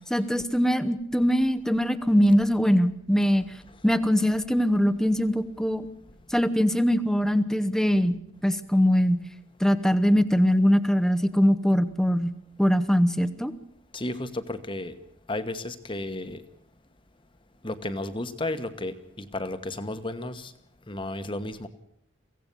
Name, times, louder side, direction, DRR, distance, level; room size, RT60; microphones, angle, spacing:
voice 1, 0.1-3.4 3.8-5.9 6.3-9.2 9.6-12.3 12.6-13.5, equal, 5° left, 13 dB, 0.9 m, -22 dB
voice 2, 13.9-15.0 15.3-16.4 17.6-20.5 20.9-21.7, left 2 dB, 25° left, 10 dB, 1.2 m, -33 dB
23.5 x 16.5 x 7.0 m, 0.71 s
head